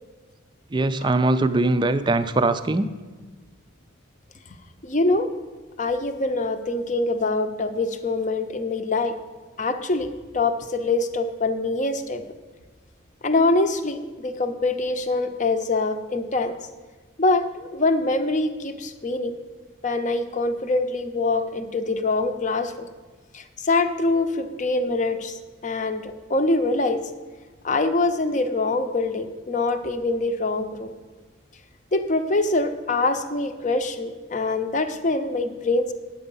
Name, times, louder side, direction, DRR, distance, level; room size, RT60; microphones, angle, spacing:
voice 1, 0.7-2.9, right 2 dB, 20° right, 11 dB, 0.4 m, -21 dB
voice 2, 4.8-5.3 5.8-9.1 9.6-10.1 10.3-12.2 13.2-16.5 17.2-19.3 19.8-22.9 23.3-25.3 25.6-27.0 27.6-30.9 31.9-35.9, left 2 dB, 35° left, 8 dB, 0.7 m, -24 dB
9.8 x 7.7 x 5.4 m, 1.3 s
head